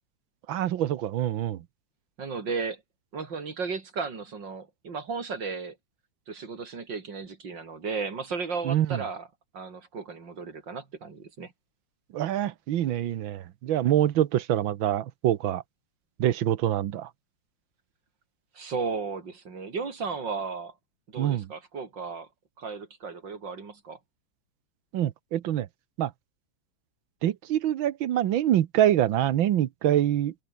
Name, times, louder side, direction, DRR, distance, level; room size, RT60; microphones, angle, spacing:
voice 1, 0.5-1.6 8.7-9.0 12.1-15.6 16.2-17.1 21.2-21.5 24.9-25.7 26.0-26.1 27.2-30.3, right 11 dB, 90° right, 1.7 m, -25 dB
voice 2, 2.2-2.8 3.1-5.8 6.3-9.3 9.5-11.5 18.6-20.7 21.1-22.3 22.6-24.0, right 5 dB, 65° right, 3.6 m, -34 dB
omnidirectional pair, 2.1 m